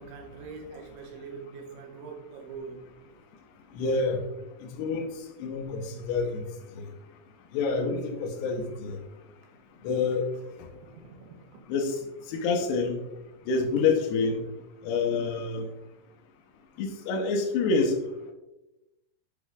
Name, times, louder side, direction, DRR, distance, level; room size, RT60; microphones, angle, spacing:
voice 1, 0.0-2.9 10.7-11.7, right 4 dB, 80° right, 3.1 m, -43 dB
voice 2, 3.8-4.2 4.6-5.1 5.4-6.4 7.5-9.0 9.8-10.3 11.7-12.0 12.3-13.0 13.5-14.4 14.8-15.7 16.8-17.9, left 4 dB, 80° left, 2.6 m, -27 dB
8.1 x 6.0 x 2.4 m
omnidirectional pair, 5.2 m